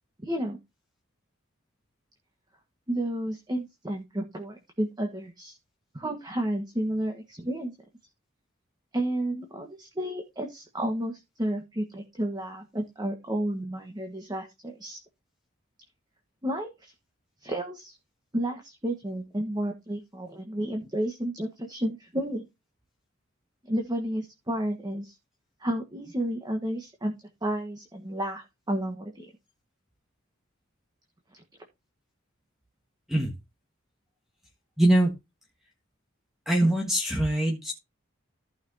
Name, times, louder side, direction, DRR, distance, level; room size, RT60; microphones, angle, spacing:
voice 1, 0.2-0.6 2.9-5.6 5.9-7.7 8.9-15.0 16.4-16.9 17.4-17.9 18.3-22.4 23.7-25.1 25.6-27.1 27.4-29.3, right 1 dB, 20° right, 3 dB, 1.5 m, -31 dB
voice 2, 34.8-35.1 36.5-37.7, right 1 dB, ahead, 1 dB, 1.6 m, -23 dB
15.0 x 5.9 x 2.8 m, 0.23 s
head